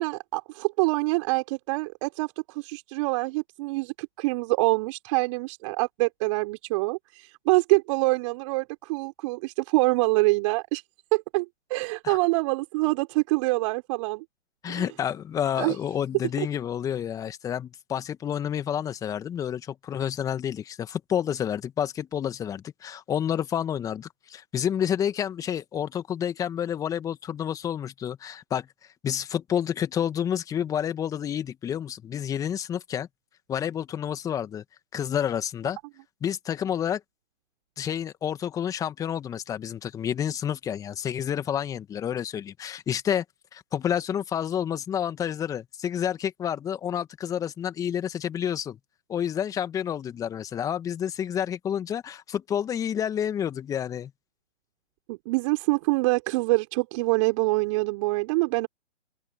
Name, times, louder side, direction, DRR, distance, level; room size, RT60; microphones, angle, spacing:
voice 1, 0.0-10.8 11.1-14.2 14.7-14.8 15.6-15.7 16.4-16.5 55.1-58.7, right 24 dB, 25° right, 4.5 m, -25 dB
voice 2, 14.6-28.7 29.0-33.1 33.5-34.6 34.9-35.8 36.2-37.0 37.8-43.2 43.5-48.8 49.1-54.1, left 9 dB, 10° left, 2.1 m, -29 dB
open air
figure-of-eight pair, 140°, 38 cm